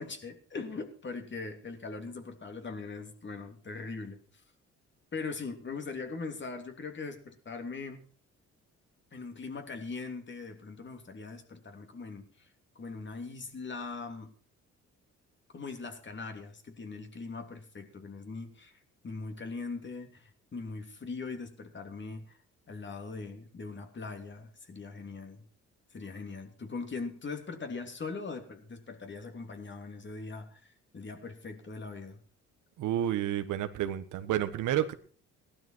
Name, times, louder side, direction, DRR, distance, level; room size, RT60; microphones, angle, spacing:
voice 1, 0.0-4.2 5.1-8.0 9.1-12.5 12.7-14.3 15.5-18.8 19.0-22.4 22.7-25.4 25.9-32.2, left 4 dB, 40° left, 6 dB, 3.0 m, -41 dB
voice 2, 32.8-34.9, right 11 dB, 80° right, 10 dB, 1.5 m, -30 dB
16.5 x 12.0 x 4.6 m, 0.41 s
cardioid pair, 80°, 30 cm